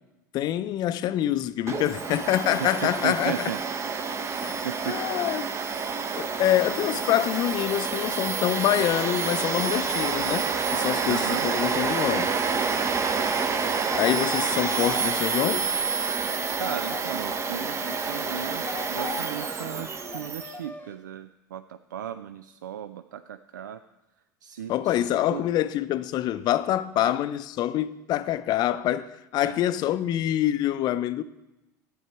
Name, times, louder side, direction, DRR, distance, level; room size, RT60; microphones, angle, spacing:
voice 1, 0.3-3.3 4.3-4.6 4.9-5.5 6.1-10.5 10.7-12.4 14.0-15.7 24.7-31.2, left 12 dB, 45° left, 0.5 m, -26 dB
Domestic sounds home sounds, 1.7-20.5, right 5 dB, 25° right, 0.8 m, -28 dB
voice 2, 2.6-3.6 4.6-5.0 11.1-11.5 16.6-23.8 24.4-25.4 27.0-27.1 29.4-29.6, right 9 dB, 80° right, 0.4 m, -36 dB
sound 1, 12.8-17.4 17.8-21.0, left 4 dB, 15° left, 0.9 m, -40 dB
11.5 x 8.7 x 4.6 m
figure-of-eight pair, 75°, 10 cm